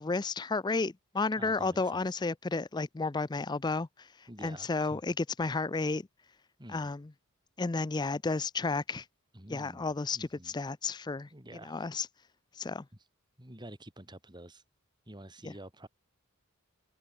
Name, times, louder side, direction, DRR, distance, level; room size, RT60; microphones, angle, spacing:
voice 1, 0.0-3.9 4.4-6.0 6.7-7.1 7.6-9.0 9.5-11.3 11.6-12.1 12.6-12.8 15.4-15.5, left 3 dB, 20° left, 0.4 m, -32 dB
voice 2, 1.3-2.0 4.3-5.0 6.6-6.9 9.3-10.6 11.2-11.8 13.4-14.6 15.1-15.9, right 1 dB, 20° right, 4.0 m, -49 dB
head